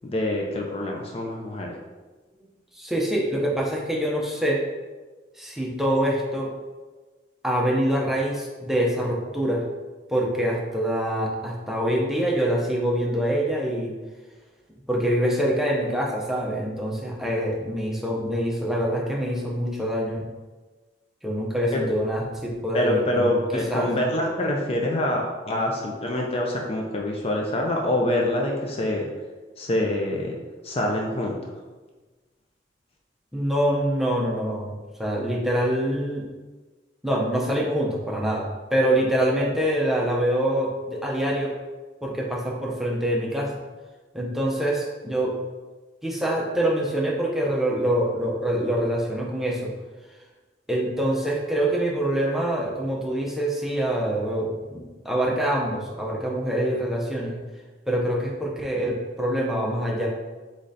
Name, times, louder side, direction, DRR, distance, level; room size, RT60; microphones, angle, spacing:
voice 1, 0.0-1.8 22.7-29.1 29.6-30.4 30.6-31.5, left 1 dB, 35° left, 0 dB, 0.5 m, -25 dB
voice 2, 2.7-4.6 5.4-6.5 7.4-9.6 10.1-13.9 14.9-20.3 21.2-23.9 33.3-34.7 35.0-36.2 37.0-41.5 42.0-43.6 44.1-45.3 46.0-49.7 50.7-57.4 57.9-60.1, right 1 dB, ahead, -2 dB, 0.7 m, -25 dB
3.8 x 3.2 x 3.9 m, 1.3 s
head